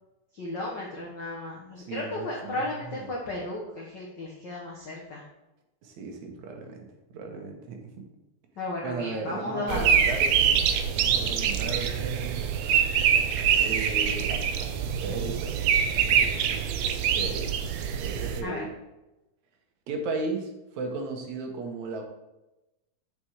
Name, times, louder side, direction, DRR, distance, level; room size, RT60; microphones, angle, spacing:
voice 1, 0.3-5.2 8.6-10.0 18.4-18.6, left 2 dB, 85° left, -3 dB, 0.9 m, -34 dB
voice 2, 1.8-3.1 5.8-8.1 8.8-12.5 13.6-16.7 17.1-17.6 18.0-18.7 19.9-22.0, right 3 dB, 65° right, 3 dB, 2.3 m, -36 dB
sound 1, 9.7-18.4, right 8 dB, 85° right, 1.5 m, -25 dB
6.8 x 5.7 x 4.8 m, 0.98 s
omnidirectional pair, 3.7 m